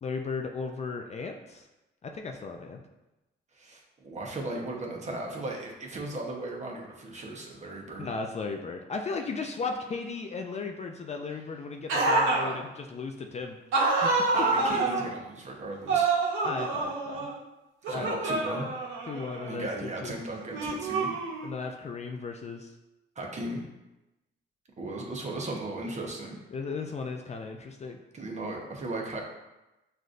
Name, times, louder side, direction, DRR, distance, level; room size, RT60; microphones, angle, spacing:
voice 1, 0.0-1.7 2.0-2.8 8.0-13.6 14.0-14.3 16.4-17.3 17.9-18.1 19.1-20.2 21.4-22.7 26.5-28.0, left 4 dB, 35° left, 4 dB, 0.4 m, -36 dB
voice 2, 3.5-8.1 14.3-16.1 17.9-18.7 19.5-21.1 23.2-23.6 24.8-26.4 28.1-29.2, right 2 dB, 35° right, -1 dB, 0.9 m, -36 dB
sound 1, 11.9-12.5 13.7-15.1 15.9-17.4 17.8-19.6 20.5-21.6, right 3 dB, 90° right, 0.8 m, -27 dB
6.2 x 2.6 x 2.5 m, 1.0 s
cardioid pair, 90°, 20 cm